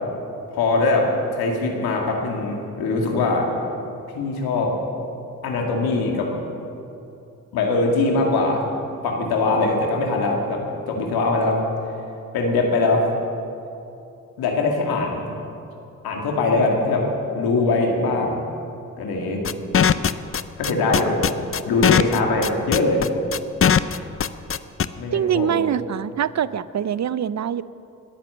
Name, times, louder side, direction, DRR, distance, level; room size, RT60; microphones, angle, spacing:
voice 1, 0.5-3.5 4.2-4.7 5.4-6.3 7.5-8.6 9.0-11.6 12.3-13.1 14.4-15.3 16.0-17.0 17.3-18.4 19.0-19.4 20.6-21.2 21.7-23.0 25.0-25.6, left 3 dB, 85° left, 1 dB, 2.1 m, -22 dB
sound 1, 19.4-24.9, left 7 dB, 35° left, 0.6 m, -19 dB
voice 2, 25.1-27.6, right 9 dB, 50° right, 17 dB, 0.6 m, -23 dB
21.0 x 9.0 x 6.7 m, 2.7 s
supercardioid pair, 40°, 36 cm